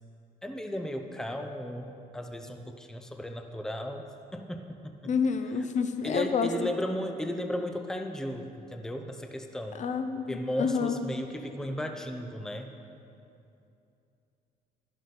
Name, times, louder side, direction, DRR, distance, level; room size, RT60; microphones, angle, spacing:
voice 1, 0.4-5.1 5.6-5.7 6.0-9.8 10.3-12.7, equal, 5° left, 5 dB, 0.7 m, -35 dB
voice 2, 5.0-6.5 9.8-11.0, left 6 dB, 45° left, 9 dB, 0.7 m, -29 dB
12.5 x 11.5 x 4.3 m, 2.7 s
cardioid pair, 110°, 17 cm